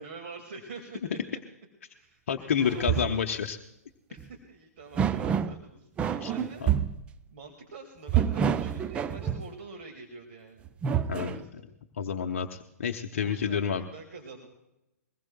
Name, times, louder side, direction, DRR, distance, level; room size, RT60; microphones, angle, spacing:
voice 1, 0.0-1.4 1.9-3.2 4.1-6.6 7.3-10.7 11.2-11.7 13.2-14.5, right 4 dB, 45° right, 3 dB, 2.0 m, -46 dB
voice 2, 2.3-3.6 6.2-6.3 6.6-6.7 11.1-11.4 12.0-13.8, left 7 dB, 50° left, 5 dB, 0.8 m, -29 dB
sound 1, 2.6-3.2 4.2-4.3 4.9-5.6 6.0-7.0 8.1-9.5 10.6-11.4, right 8 dB, 15° right, 0.4 m, -28 dB
22.5 x 20.0 x 2.3 m, 0.91 s
figure-of-eight pair, 120°, 9 cm